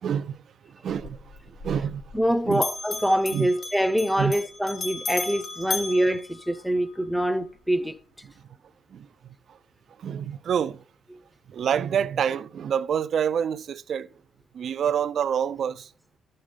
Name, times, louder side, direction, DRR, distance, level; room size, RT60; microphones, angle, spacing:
voice 1, 0.0-0.4 0.8-1.2 1.5-2.0 2.5-2.6 3.3-3.5 4.2-4.3 8.9-9.1 10.0-10.8 11.5-14.1 14.5-15.9, right 8 dB, 60° right, 0.3 m, -27 dB
Bell, 0.9-2.3 2.5-7.0, left 3 dB, 55° left, 1.7 m, -35 dB
voice 2, 2.1-8.0, equal, ahead, 0.6 m, -25 dB
12.0 x 6.4 x 3.6 m
cardioid pair, 90°, 0 cm